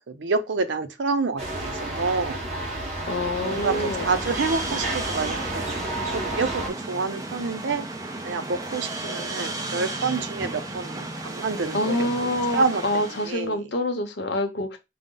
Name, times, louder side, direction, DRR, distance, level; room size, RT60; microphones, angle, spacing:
voice 1, 0.1-2.5 3.4-5.8 6.1-7.8 8.2-13.7, right 4 dB, 80° right, 0.6 m, -28 dB
sound 1, 1.4-6.7, right 2 dB, 40° right, 1.3 m, -31 dB
voice 2, 3.1-4.1 11.7-14.8, left 1 dB, 70° left, 0.8 m, -26 dB
sound 2, 3.3-13.4, right 2 dB, 20° right, 0.5 m, -34 dB
5.1 x 2.1 x 3.7 m
head